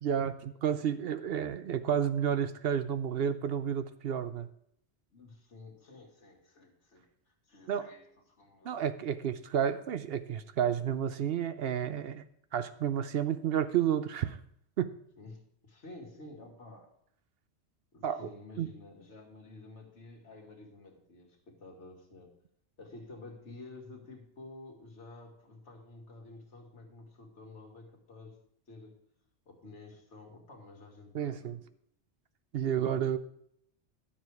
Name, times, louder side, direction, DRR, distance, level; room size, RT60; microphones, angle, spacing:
voice 1, 0.0-4.5 7.7-7.9 8.6-12.2 12.5-14.4 14.8-14.9 18.0-18.3 18.6-18.7 31.1-31.6 32.5-33.2, right 9 dB, 65° right, 12 dB, 0.7 m, -31 dB
voice 2, 5.1-8.8 15.2-16.9 17.9-22.3 22.8-28.4 28.7-29.0 29.5-31.6, left 2 dB, 75° left, 1 dB, 2.2 m, -51 dB
11.0 x 7.4 x 4.7 m, 0.72 s
omnidirectional pair, 1.2 m